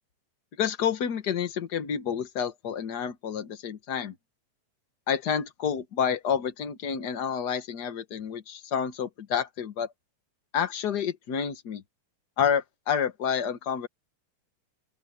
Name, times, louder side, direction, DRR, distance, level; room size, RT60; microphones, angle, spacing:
voice 1, 0.6-4.1 5.1-9.9 10.5-11.8 12.4-13.9, left 8 dB, 90° left, 0.8 m, -29 dB
open air
omnidirectional pair, 3.7 m